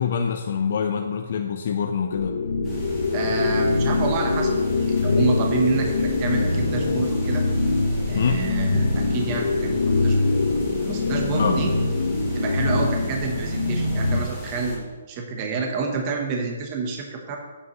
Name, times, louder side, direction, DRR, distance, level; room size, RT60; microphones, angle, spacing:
voice 1, 0.0-2.4 8.1-8.5 11.3-11.6, left 7 dB, 50° left, 3 dB, 0.6 m, -25 dB
sound 1, 2.1-14.2, left 3 dB, 85° left, 1.2 m, -23 dB
sound 2, 2.6-14.8, equal, 5° right, 3.0 m, -36 dB
voice 2, 3.1-7.4 8.1-10.3 10.9-11.7 12.3-17.4, right 4 dB, 25° right, 2 dB, 1.0 m, -28 dB
9.4 x 8.6 x 3.1 m, 1.3 s
hypercardioid pair, 165°, 0 cm